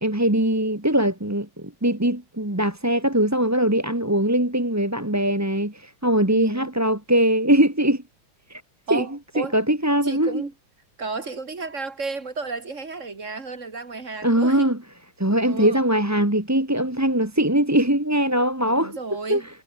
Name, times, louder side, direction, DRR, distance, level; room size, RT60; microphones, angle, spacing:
voice 1, 0.0-8.0 8.5-8.6 8.9-9.0 9.4-10.4 14.2-14.8 15.2-19.0 19.3-19.4, right 1 dB, 10° right, 1.9 m, -21 dB
voice 2, 6.3-6.7 8.9-9.6 10.0-10.5 11.0-14.7 15.5-15.8 18.7-19.5, right 4 dB, 35° right, 2.8 m, -32 dB
omnidirectional pair, 2.3 m